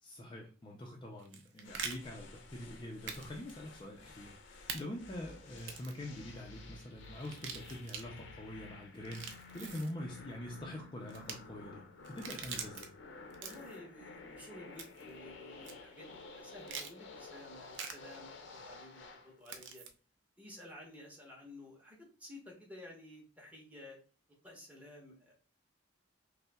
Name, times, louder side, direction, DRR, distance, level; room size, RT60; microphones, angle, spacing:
voice 1, 0.0-9.2 9.5-11.8 12.1-12.9, left 1 dB, 25° left, 0 dB, 0.5 m, -45 dB
sound 1, 1.2-2.0 3.1-3.2 3.5-3.6 4.7-4.8 5.6-6.0 7.2-8.0 8.9-9.9 11.1-11.3 12.0-12.9 13.3-13.8 14.8-15.1 15.6-15.7 16.7-16.9 17.7-17.9 19.4-19.9, right 6 dB, 70° right, 0.5 m, -43 dB
sound 2, 1.6-19.3, left 3 dB, 70° left, 0.6 m, -52 dB
voice 2, 13.4-16.1 16.3-19.9 20.4-24.0 24.4-25.3, left 1 dB, 10° right, -3 dB, 1.0 m, -53 dB
5.3 x 2.1 x 2.3 m, 0.36 s
head